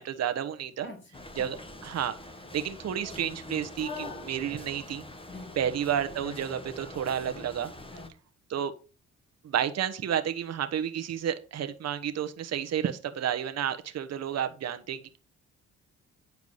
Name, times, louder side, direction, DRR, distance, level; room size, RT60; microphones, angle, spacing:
voice 1, 0.0-0.9 1.4-1.6 1.8-2.1 2.5-5.0 5.6-7.7 8.5-8.7 9.4-15.2, right 9 dB, 60° right, 1.1 m, -31 dB
voice 2, 0.8-1.6 5.3-5.8 7.9-8.2, left 3 dB, 40° left, 2.9 m, -47 dB
sound 1, 1.1-8.1, left 2 dB, 20° left, 1.4 m, -43 dB
9.3 x 4.7 x 5.5 m
cardioid pair, 90°, 30 cm